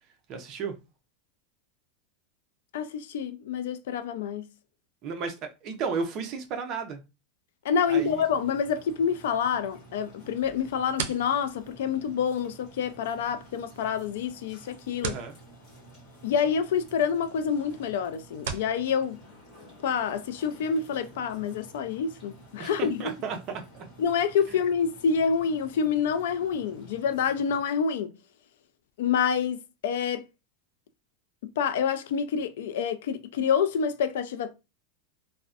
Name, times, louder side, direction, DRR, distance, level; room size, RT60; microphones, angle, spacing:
voice 1, 0.3-0.7 5.0-5.3 5.6-7.0 7.9-8.2 15.0-15.3 22.6-23.9, right 5 dB, 35° right, 0.5 m, -33 dB
voice 2, 2.7-4.4 7.6-15.2 16.2-19.2 19.8-23.2 24.0-28.1 29.0-30.2 31.6-34.5, left 7 dB, 75° left, 0.3 m, -27 dB
sound 1, 7.8-27.6, right 1 dB, 25° left, 1.2 m, -51 dB
sound 2, 10.4-18.8, right 6 dB, 85° right, 0.5 m, -42 dB
2.5 x 2.1 x 2.4 m
supercardioid pair, 165°, 0 cm